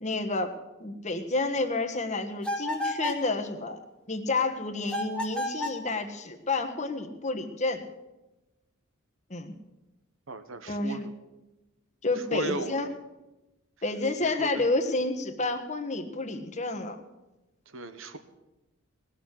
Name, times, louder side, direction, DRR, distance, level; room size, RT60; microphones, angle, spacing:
voice 1, 0.0-0.5 0.8-3.8 4.1-7.8 9.3-9.5 10.7-11.0 12.0-12.9 13.8-17.0, left 2 dB, 35° left, 5 dB, 1.4 m, -30 dB
sound 1, 2.4-3.3 4.9-5.9, left 1 dB, 5° left, 1.5 m, -31 dB
voice 2, 10.3-11.1 12.3-12.8 14.2-14.6 17.7-18.2, right 2 dB, 65° right, 10 dB, 1.2 m, -36 dB
19.0 x 6.7 x 9.9 m, 1.0 s
head